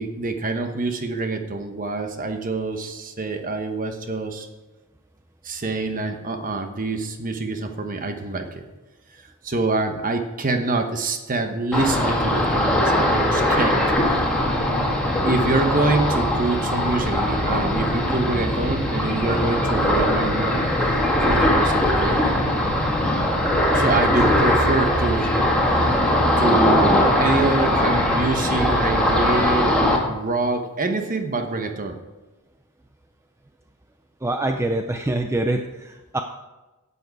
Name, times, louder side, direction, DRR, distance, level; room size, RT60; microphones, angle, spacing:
voice 1, 0.0-4.5 5.4-8.6 9.4-13.8 15.2-20.7 21.2-22.3 23.7-25.3 26.4-32.0, right 3 dB, 40° right, 5 dB, 1.1 m, -25 dB
Ocean, 11.7-30.0, left 1 dB, 5° left, 1.8 m, -20 dB
voice 2, 34.2-36.2, right 2 dB, 10° right, 5 dB, 0.5 m, -25 dB
11.5 x 8.2 x 4.8 m, 1.1 s
head